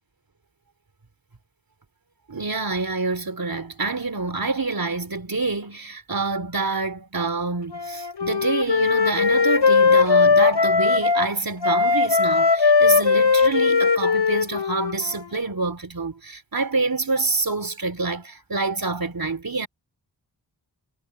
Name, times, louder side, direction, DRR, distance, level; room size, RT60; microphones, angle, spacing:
voice 1, 2.3-19.7, right 3 dB, 55° right, 3.7 m, -27 dB
Wind instrument woodwind instrument, 7.7-11.3 11.6-15.4, left 5 dB, 70° left, 5.8 m, -19 dB
wide cardioid pair, 65°, 43 cm